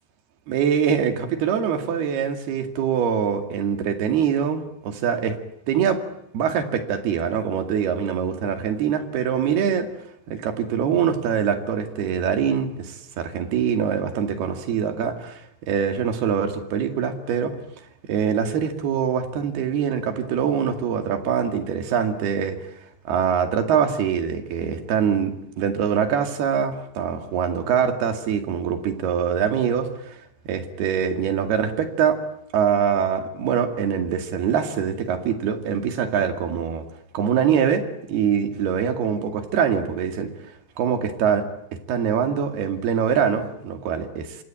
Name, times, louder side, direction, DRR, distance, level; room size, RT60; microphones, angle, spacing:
voice 1, 0.5-5.3 5.7-6.0 6.3-9.9 10.3-17.6 18.1-22.6 23.1-30.2 30.5-32.2 32.5-36.8 37.1-37.8 38.1-40.3 40.8-41.5 41.9-44.4, right 7 dB, 65° right, 7 dB, 4.1 m, -23 dB
26.0 x 26.0 x 8.9 m, 0.77 s
omnidirectional pair, 5.2 m